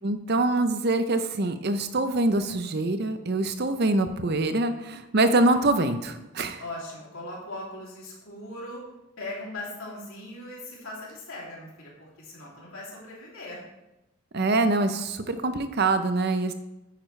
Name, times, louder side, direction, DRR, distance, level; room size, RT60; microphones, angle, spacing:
voice 1, 0.0-6.6 14.3-16.5, right 2 dB, 45° right, 9 dB, 0.6 m, -24 dB
voice 2, 6.6-8.8 9.2-13.6, left 1 dB, 65° left, -4 dB, 2.9 m, -39 dB
9.4 x 8.8 x 3.3 m, 0.96 s
head